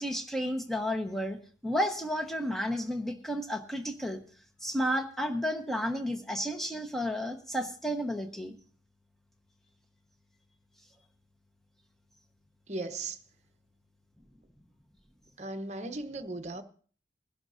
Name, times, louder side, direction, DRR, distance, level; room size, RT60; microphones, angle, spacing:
voice 1, 0.0-1.4 1.6-4.2 4.6-8.6, equal, ahead, 1.2 m, -32 dB
voice 2, 12.7-13.2 15.4-16.6, right 2 dB, 40° right, 1.0 m, -37 dB
22.0 x 11.5 x 2.7 m
head